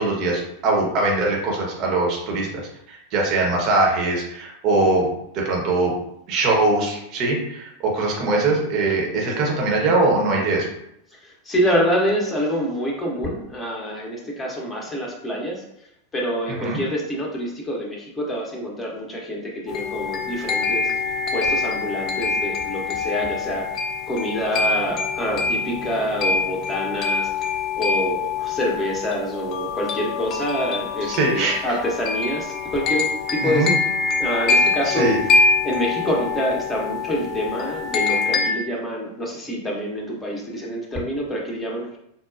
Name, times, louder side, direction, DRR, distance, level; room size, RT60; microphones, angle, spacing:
voice 1, 0.0-5.1 5.3-5.9 6.3-10.7 16.5-16.8 31.0-31.7 33.4-33.7 34.9-35.2, right 2 dB, 40° right, -1 dB, 0.8 m, -22 dB
voice 2, 11.1-15.6 16.1-20.9 21.3-23.7 24.1-27.5 27.8-33.7 34.2-35.1 35.6-42.0, equal, 15° left, -2 dB, 0.8 m, -26 dB
sound 1, 19.7-38.5, left 4 dB, 35° left, 0.4 m, -24 dB
4.1 x 2.2 x 2.4 m, 0.78 s
figure-of-eight pair, 90°, 0 cm